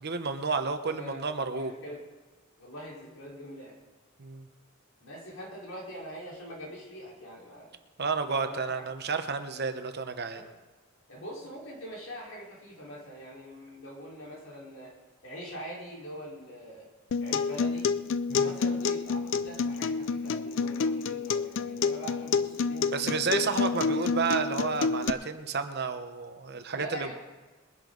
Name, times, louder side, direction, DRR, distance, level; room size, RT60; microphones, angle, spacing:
voice 1, 0.0-1.7 4.2-4.5 8.0-10.4 18.3-18.5 22.9-27.1, right 4 dB, 55° right, 8 dB, 1.0 m, -31 dB
voice 2, 0.9-2.0 2.6-3.8 5.0-7.7 8.3-8.8 10.3-10.5 11.1-15.0 15.2-16.9 17.2-17.9 18.3-23.4 23.8-24.0 26.7-27.1, equal, 80° left, -3 dB, 4.7 m, -43 dB
Acoustic guitar, 17.1-25.1, left 5 dB, 65° left, 0.4 m, -29 dB
21.5 x 11.0 x 4.0 m, 1.3 s
head